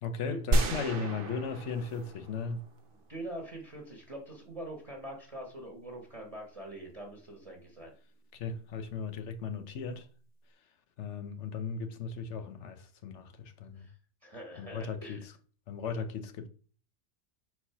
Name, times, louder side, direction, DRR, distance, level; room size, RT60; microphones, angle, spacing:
voice 1, 0.0-2.7 8.3-10.1 11.0-13.9 14.6-15.2 15.7-16.5, left 5 dB, 80° left, 1.1 m, -37 dB
sound 1, 0.5-2.8, right 2 dB, 55° right, 0.9 m, -31 dB
voice 2, 3.1-7.9 13.7-14.0 14.2-15.3, right 1 dB, 30° right, 1.2 m, -44 dB
4.6 x 4.2 x 5.6 m
omnidirectional pair, 1.2 m